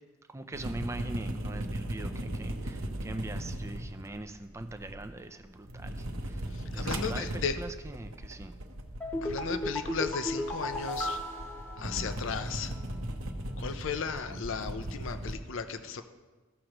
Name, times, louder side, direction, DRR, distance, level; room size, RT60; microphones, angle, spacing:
voice 1, 0.3-8.6 14.3-14.4, right 2 dB, 15° right, 7 dB, 0.4 m, -42 dB
sound 1, 0.5-5.2 5.6-15.3, right 1 dB, 80° right, 0.9 m, -38 dB
voice 2, 6.5-7.6 9.2-11.2 11.8-12.7 13.6-16.0, left 6 dB, 65° left, 9 dB, 0.5 m, -35 dB
sound 2, 9.0-12.4 12.7-12.8, left 1 dB, 10° left, 1.0 m, -35 dB
15.0 x 6.3 x 3.0 m, 1.2 s
head